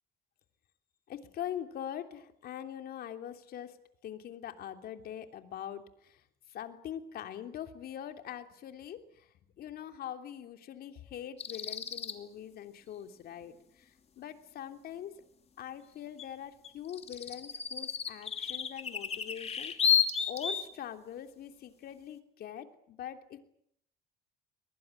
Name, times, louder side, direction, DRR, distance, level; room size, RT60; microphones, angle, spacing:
voice 1, 1.1-3.8 4.0-6.2 6.5-9.0 9.6-13.9 14.2-15.1 15.6-20.0 20.3-23.4, left 10 dB, 65° left, 7 dB, 3.1 m, -43 dB
sound 1, 11.4-12.1 16.2-16.3 16.6-20.7, left 7 dB, 40° left, 2.8 m, -32 dB
22.5 x 22.0 x 9.8 m, 0.70 s
cardioid pair, 110°, 17 cm